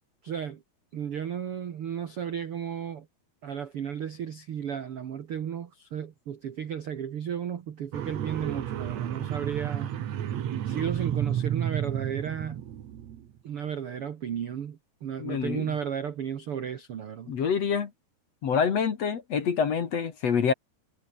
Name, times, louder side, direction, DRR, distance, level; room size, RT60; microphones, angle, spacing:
voice 1, 0.2-0.6 0.9-3.1 3.4-9.9 10.6-12.6 13.4-17.3, right 8 dB, 75° right, 1.3 m, -34 dB
sound 1, 7.9-13.2, right 10 dB, 55° right, 2.1 m, -31 dB
voice 2, 15.2-15.7 17.3-17.9 18.4-20.5, left 6 dB, 45° left, 2.6 m, -26 dB
omnidirectional pair, 4.8 m